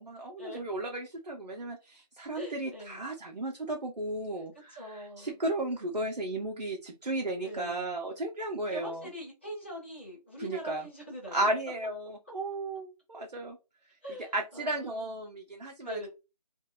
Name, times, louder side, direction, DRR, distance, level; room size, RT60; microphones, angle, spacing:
voice 1, 0.0-9.1 10.4-10.9 11.3-13.6 14.3-16.1, right 2 dB, 85° right, 1 dB, 0.8 m, -34 dB
voice 2, 2.3-3.0 4.7-5.4 7.4-7.8 8.7-11.5 14.0-15.0 15.8-16.1, equal, 15° left, -4 dB, 0.7 m, -42 dB
2.9 x 2.5 x 2.4 m, 0.28 s
figure-of-eight pair, 165°, 21 cm